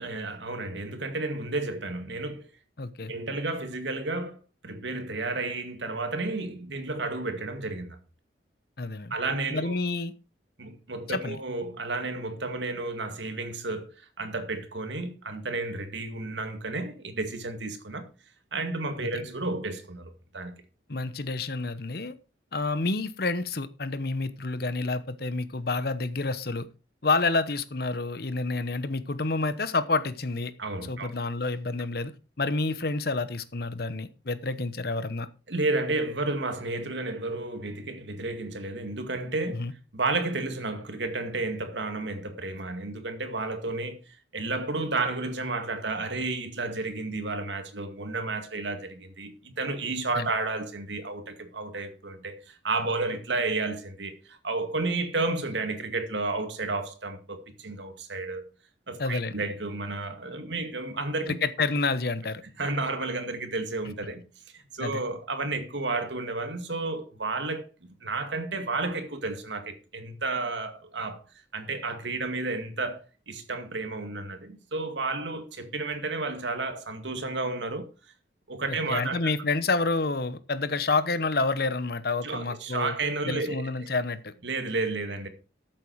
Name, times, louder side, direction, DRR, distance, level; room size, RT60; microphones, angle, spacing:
voice 1, 0.0-2.5 3.1-8.0 9.1-9.8 10.6-18.1 18.5-20.6 30.6-31.1 35.5-39.6 39.9-58.5 58.9-61.3 62.6-64.3 64.5-67.7 68.0-71.2 71.5-77.9 78.5-79.3 82.2-83.9 84.4-85.3, right 3 dB, 75° right, 2.2 m, -32 dB
voice 2, 2.8-3.1 8.8-9.1 9.5-10.1 11.1-11.4 19.0-19.1 20.9-22.1 22.5-26.7 27.0-30.5 30.9-32.1 32.4-35.3 39.5-39.7 50.1-50.3 59.0-59.3 61.4-62.4 64.8-65.0 78.7-82.9 83.2-84.3, left 3 dB, 55° left, 1.0 m, -29 dB
13.5 x 7.6 x 4.7 m
head